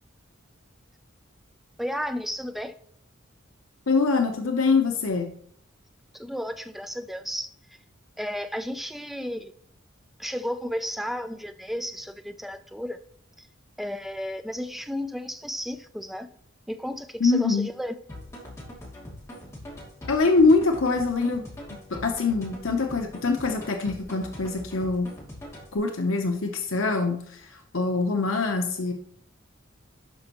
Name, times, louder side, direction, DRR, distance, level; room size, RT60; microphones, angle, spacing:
voice 1, 1.8-2.7 6.1-7.5 8.2-9.5 10.2-13.0 13.4-13.5 13.8-16.3 16.7-17.9, equal, ahead, 9 dB, 0.4 m, -33 dB
voice 2, 3.9-5.3 17.2-17.7 20.1-21.4 21.9-25.1 25.7-28.9, left 3 dB, 85° left, 4 dB, 0.8 m, -24 dB
sound 1, 18.1-25.8, left 1 dB, 15° left, 2.6 m, -42 dB
12.0 x 5.4 x 3.0 m, 0.65 s
head